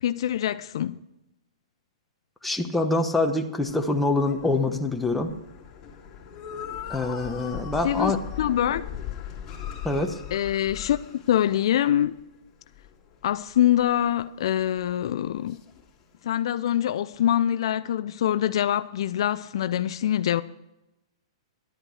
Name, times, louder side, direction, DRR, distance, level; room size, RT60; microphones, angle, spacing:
voice 1, 0.0-1.0 7.8-8.9 10.3-11.0 11.3-12.1 13.2-15.6 16.2-20.4, left 11 dB, 65° left, 0.4 m, -24 dB
voice 2, 2.4-5.3 6.9-8.3 9.8-10.2, left 2 dB, 5° left, 1.1 m, -25 dB
sound 1, 3.7-12.2 12.5-14.9 15.4-16.0, left 9 dB, 25° left, 2.6 m, -40 dB
11.5 x 8.8 x 6.4 m
hypercardioid pair, 135°, 3 cm